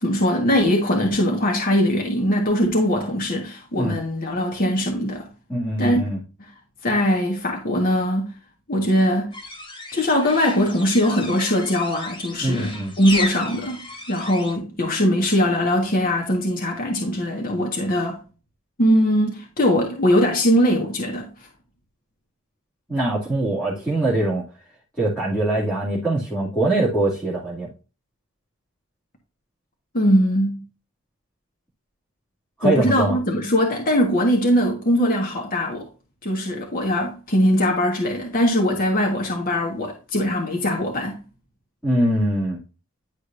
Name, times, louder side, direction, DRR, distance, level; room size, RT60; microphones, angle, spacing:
voice 1, 0.0-5.3 5.8-6.0 6.8-8.3 8.7-9.3 9.9-18.2 18.8-21.3 29.9-30.6 32.6-35.9 36.2-41.2, equal, 40° left, 1.5 m, -21 dB
voice 2, 5.5-6.2 12.4-12.9 22.9-24.4 25.0-27.7 32.6-33.2 41.8-42.6, right 1 dB, 5° left, 2.4 m, -22 dB
sound 1, 9.3-14.6, left 2 dB, 25° left, 1.7 m, -34 dB
10.5 x 5.0 x 2.5 m
head